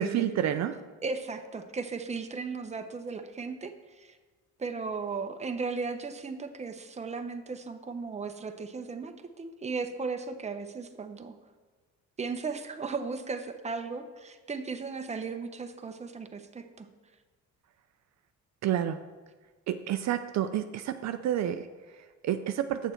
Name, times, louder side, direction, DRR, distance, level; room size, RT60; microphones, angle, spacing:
voice 1, 0.0-0.8 18.6-19.0 19.7-22.9, right 11 dB, 65° right, 9 dB, 0.5 m, -30 dB
voice 2, 1.0-4.2 4.6-11.3 12.2-16.9, right 4 dB, 20° right, 7 dB, 0.7 m, -36 dB
8.1 x 6.7 x 4.4 m, 1.3 s
cardioid pair, 90°, 30 cm